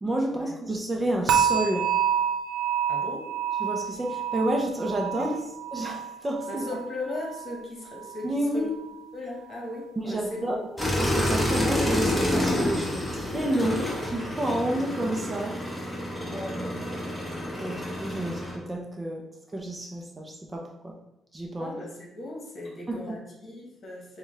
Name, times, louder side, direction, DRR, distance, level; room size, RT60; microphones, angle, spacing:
voice 1, 0.0-1.9 3.6-5.3 5.7-6.8 8.2-8.7 10.0-10.6 10.9-16.8 17.6-19.3 19.5-21.0 21.3-21.7 22.9-23.2, right 1 dB, 20° right, 0 dB, 0.6 m, -30 dB
sound 1, 1.3-8.4 8.7-9.0 9.5-9.7, right 8 dB, 85° right, 0.5 m, -29 dB
voice 2, 2.9-3.3 5.1-5.4 6.5-8.7 9.1-10.8 16.1-16.8 21.6-24.2, left 2 dB, 45° left, -1 dB, 1.4 m, -38 dB
sound 2, 10.8-18.6, left 1 dB, 10° left, 1.3 m, -28 dB
6.1 x 2.4 x 3.3 m, 0.90 s
cardioid pair, 90°, 0 cm